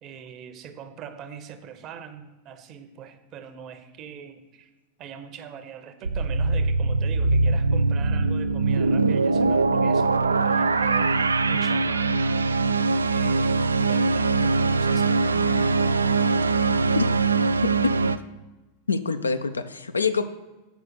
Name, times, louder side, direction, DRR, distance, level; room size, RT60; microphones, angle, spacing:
voice 1, 0.0-4.7 5.0-12.5 13.1-15.6, right 7 dB, 35° right, 9 dB, 0.8 m, -42 dB
sound 1, 6.0-18.2, right 3 dB, 75° right, 0.3 m, -22 dB
voice 2, 18.9-20.2, left 5 dB, 75° left, 9 dB, 0.5 m, -26 dB
7.1 x 5.0 x 6.4 m, 1.1 s
figure-of-eight pair, 90°, 0 cm